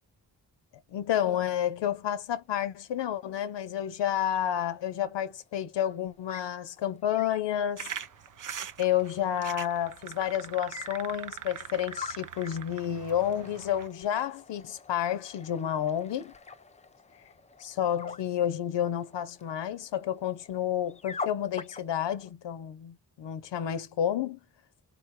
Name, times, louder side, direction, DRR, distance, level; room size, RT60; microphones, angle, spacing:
voice 1, 0.9-7.9 8.8-16.3 17.6-24.4, left 10 dB, 80° left, 0.6 m, -30 dB
sound 1, 2.4-22.3, left 4 dB, 15° left, 0.4 m, -47 dB
sound 2, 7.8-13.9, right 9 dB, 50° right, 0.5 m, -42 dB
3.8 x 2.2 x 3.0 m
cardioid pair, 55°, 42 cm